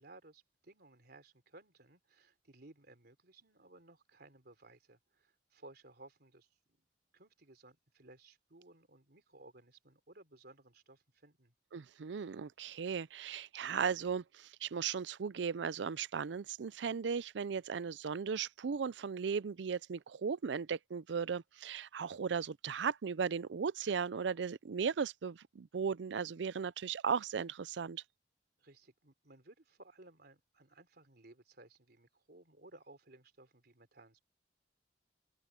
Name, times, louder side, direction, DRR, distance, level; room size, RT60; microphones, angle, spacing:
voice 1, 0.0-6.8 7.1-11.5 28.6-34.2, right 2 dB, 60° right, 3.6 m, -59 dB
voice 2, 11.7-28.0, right 6 dB, 80° right, 0.5 m, -37 dB
open air
head